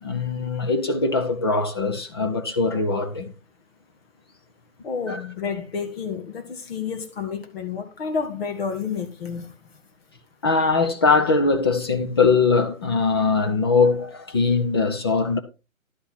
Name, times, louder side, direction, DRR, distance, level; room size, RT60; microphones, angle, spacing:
voice 1, 0.0-3.3 5.1-5.2 10.4-15.4, left 4 dB, 20° left, 0.5 m, -21 dB
voice 2, 4.8-9.4, left 6 dB, 45° left, 2.1 m, -30 dB
11.5 x 5.6 x 4.2 m
figure-of-eight pair, 135°, 40 cm